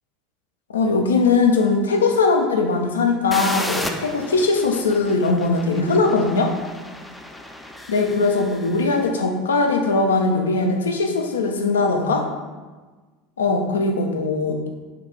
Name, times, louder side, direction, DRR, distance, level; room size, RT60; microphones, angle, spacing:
voice 1, 0.7-6.5 7.9-12.3 13.4-14.6, left 3 dB, 75° left, 3 dB, 0.4 m, -20 dB
sound 1, 3.3-9.0, left 1 dB, 5° left, 0.4 m, -34 dB
4.5 x 2.4 x 3.6 m, 1.3 s
figure-of-eight pair, 75°, 0 cm